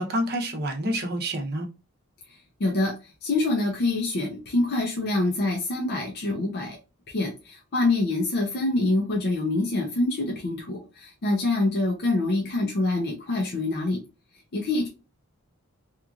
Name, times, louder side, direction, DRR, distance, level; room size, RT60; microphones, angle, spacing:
voice 1, 0.0-1.7, equal, 45° right, 0.7 m, -28 dB
voice 2, 2.3-6.8 7.1-14.0 14.5-14.9, left 2 dB, 50° left, 0.5 m, -26 dB
2.9 x 2.4 x 2.3 m
head